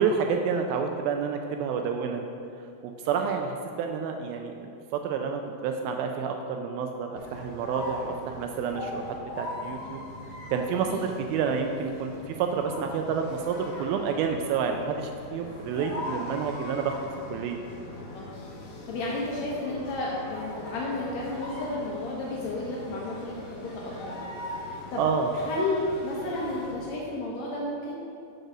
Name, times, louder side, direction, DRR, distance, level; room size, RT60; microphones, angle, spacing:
voice 1, 0.0-2.2 2.8-4.5 4.9-10.0 10.5-17.0 17.3-17.6 25.0-25.3, right 6 dB, 80° right, 4 dB, 2.3 m, -29 dB
sound 1, 7.2-26.8, left 1 dB, 60° left, 1.9 m, -41 dB
voice 2, 18.9-23.4 23.6-24.1 24.9-25.0 25.4-27.9, left 2 dB, 85° left, -4 dB, 1.5 m, -32 dB
7.4 x 5.4 x 6.0 m, 2.5 s
omnidirectional pair, 4.5 m